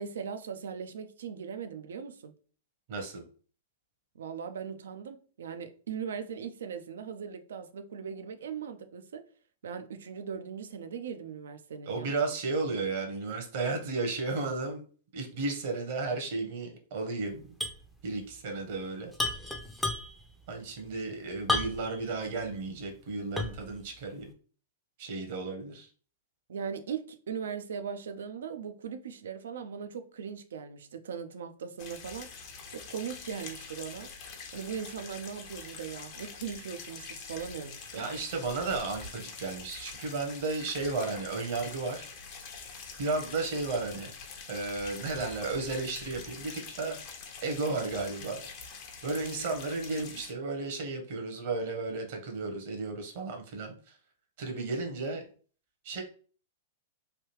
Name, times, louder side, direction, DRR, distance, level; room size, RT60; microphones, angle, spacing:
voice 1, 0.0-2.3 4.2-9.3 9.6-12.1 26.5-32.3 32.7-34.1 34.5-38.1, right 7 dB, 75° right, 0.4 m, -39 dB
voice 2, 2.9-3.2 11.9-14.8 15.1-17.6 18.0-19.1 20.5-24.3 25.0-25.9 37.9-42.1 43.0-44.1 44.5-47.0 47.4-48.4 49.0-54.0 54.4-55.2 55.8-56.0, right 3 dB, 60° right, 0.9 m, -33 dB
sound 1, 17.6-17.9 18.1-18.2 19.1-20.3 21.5-22.0 22.5-22.6 23.4-23.7, left 2 dB, ahead, 0.5 m, -31 dB
sound 2, 31.8-50.3, left 5 dB, 45° left, 0.7 m, -45 dB
3.2 x 2.3 x 3.0 m
hypercardioid pair, 110°, 0 cm